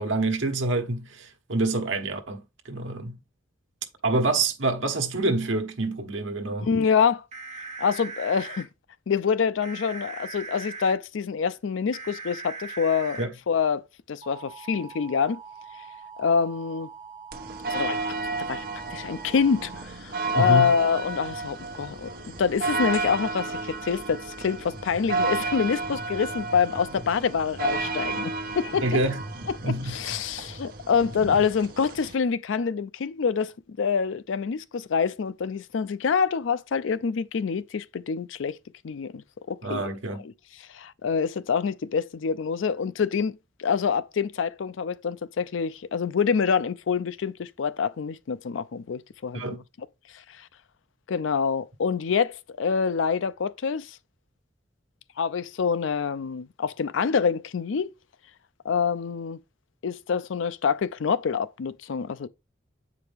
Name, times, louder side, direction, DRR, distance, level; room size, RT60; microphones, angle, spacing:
voice 1, 0.0-3.2 4.0-6.7 13.2-13.3 20.4-20.8 28.8-29.2 29.6-30.1 39.6-40.2 49.3-49.6, right 2 dB, 80° right, 1.2 m, -27 dB
voice 2, 6.6-7.2 7.8-8.7 9.1-13.2 13.5-15.4 16.2-16.9 17.7-18.0 18.5-18.6 18.9-29.0 29.6-33.5 33.8-38.6 38.8-39.8 40.7-49.4 50.4-50.5 51.1-54.0 55.2-57.9 58.6-59.4 59.8-62.3, left 6 dB, 80° left, 0.4 m, -26 dB
sound 1, 7.3-8.6 9.6-10.9 11.9-13.2 14.2-19.8, right 5 dB, 35° right, 1.2 m, -41 dB
sound 2, 17.3-32.1, right 3 dB, 50° right, 1.0 m, -32 dB
7.8 x 4.8 x 3.4 m
head